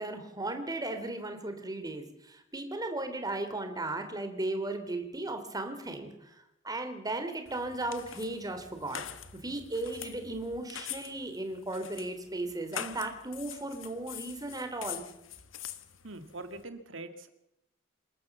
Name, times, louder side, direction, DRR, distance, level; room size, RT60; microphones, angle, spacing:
voice 1, 0.0-6.3 6.6-9.0 9.3-15.0, right 2 dB, 20° right, 7 dB, 3.3 m, -36 dB
sound 1, 7.5-16.6, left 9 dB, 80° left, 1.6 m, -44 dB
voice 2, 16.0-17.3, right 2 dB, 75° right, 9 dB, 2.4 m, -43 dB
27.5 x 13.5 x 7.3 m, 0.86 s
head